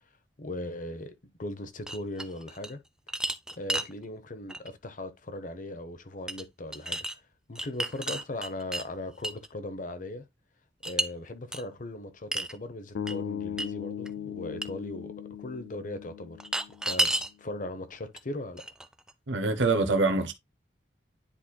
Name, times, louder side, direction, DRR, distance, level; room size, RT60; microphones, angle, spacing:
voice 1, 0.4-1.1 1.4-2.8 3.6-7.1 7.5-10.2 10.9-15.1 15.4-16.4 16.8-17.1 17.4-18.6, left 1 dB, 45° left, 0.8 m, -38 dB
sound 1, 1.9-2.7 3.1-3.9 4.5-4.7 6.3-6.4 6.7-7.1 7.5-8.8 9.2-9.5 10.8-11.1 11.5-11.6 12.3-12.6 13.1-13.2 13.6-13.7 14.1-14.2 14.6-14.7 16.4-17.3 18.2-18.3 18.6-19.1, right 1 dB, 5° right, 0.5 m, -31 dB
sound 2, 12.9-17.1, left 9 dB, 75° left, 0.6 m, -38 dB
voice 2, 19.3-20.3, right 3 dB, 85° right, 0.9 m, -25 dB
10.0 x 4.2 x 2.2 m
head